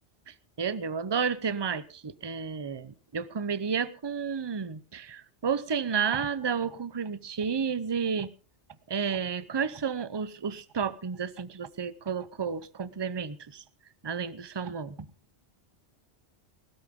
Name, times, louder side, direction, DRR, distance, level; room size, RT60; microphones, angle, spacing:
voice 1, 0.3-8.3 8.9-13.6 14.0-15.1, right 6 dB, 25° right, 0.7 m, -31 dB
20.0 x 13.5 x 3.7 m
omnidirectional pair, 1.2 m